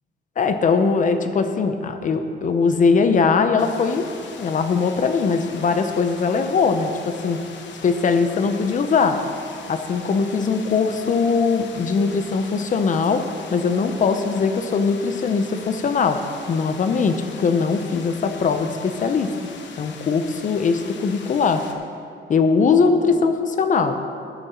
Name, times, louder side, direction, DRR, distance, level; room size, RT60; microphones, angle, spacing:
voice 1, 0.4-4.1 4.4-7.4 7.8-9.2 9.7-13.2 13.5-16.2 16.5-19.3 19.8-21.6 22.3-24.0, left 5 dB, 45° left, 8 dB, 0.7 m, -20 dB
sound 1, 3.6-21.7, left 5 dB, 75° left, 1.0 m, -41 dB
12.0 x 7.1 x 5.7 m, 2.7 s
wide cardioid pair, 165°, 19 cm